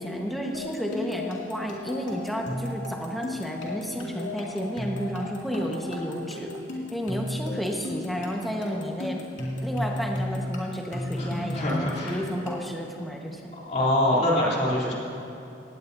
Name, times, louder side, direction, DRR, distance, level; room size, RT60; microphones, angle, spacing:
voice 1, 0.0-6.5 6.9-9.2 9.6-13.5, equal, ahead, -1 dB, 1.3 m, -31 dB
sound 1, 0.5-12.9, left 1 dB, 85° left, 2.5 m, -35 dB
voice 2, 11.2-12.2 13.5-14.9, left 1 dB, 40° left, -6 dB, 3.2 m, -25 dB
19.0 x 16.5 x 2.7 m, 2.9 s
head